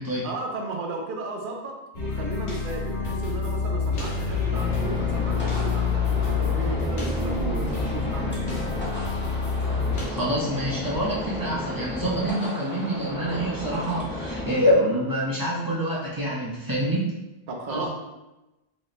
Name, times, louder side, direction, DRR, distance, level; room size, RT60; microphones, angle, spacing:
voice 1, 0.2-8.6 17.5-17.9, right 3 dB, 60° right, 1 dB, 0.7 m, -35 dB
sound 1, 1.9-10.1, left 5 dB, 80° left, 1.2 m, -27 dB
sound 2, 4.1-5.7, equal, 40° left, 1.1 m, -47 dB
sound 3, 4.5-14.5, left 1 dB, 10° left, 0.7 m, -33 dB
voice 2, 10.1-17.1 17.7-17.9, equal, 25° right, -6 dB, 0.6 m, -26 dB
3.0 x 2.1 x 4.0 m, 0.99 s
omnidirectional pair, 1.1 m